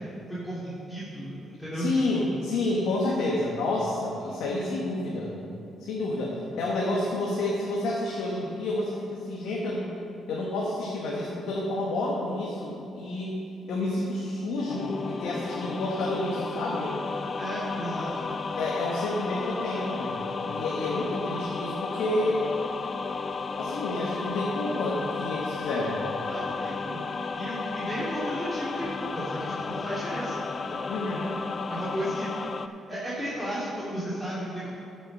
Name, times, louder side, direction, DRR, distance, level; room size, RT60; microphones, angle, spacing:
voice 1, 0.3-2.3 17.3-18.3 20.8-21.0 26.2-30.9 31.7-32.3 32.6-34.7, equal, 5° left, -10 dB, 2.6 m, -34 dB
voice 2, 1.7-5.3 5.8-9.9 10.3-13.4 13.7-17.0 18.6-22.5 23.6-26.0 30.9-31.3, left 2 dB, 85° left, -4 dB, 1.5 m, -29 dB
sound 1, 14.7-32.7, left 4 dB, 40° left, 0.5 m, -33 dB
13.5 x 6.3 x 5.4 m, 2.7 s
cardioid pair, 90°, 0 cm